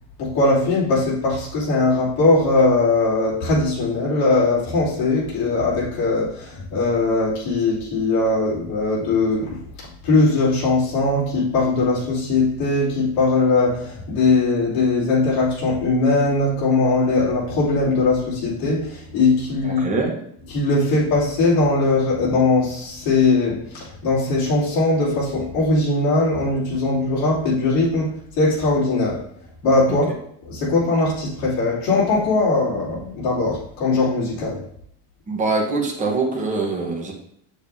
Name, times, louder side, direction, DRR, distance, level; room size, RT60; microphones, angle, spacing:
voice 1, 0.2-9.6 10.0-20.0 20.5-29.2 29.6-30.1 30.5-34.6, left 3 dB, 55° left, -8 dB, 3.0 m, -20 dB
voice 2, 19.6-20.2 29.9-30.0 35.3-37.1, right 3 dB, 15° right, -1 dB, 1.1 m, -23 dB
7.0 x 6.9 x 2.7 m, 0.70 s
cardioid pair, 170°, 43 cm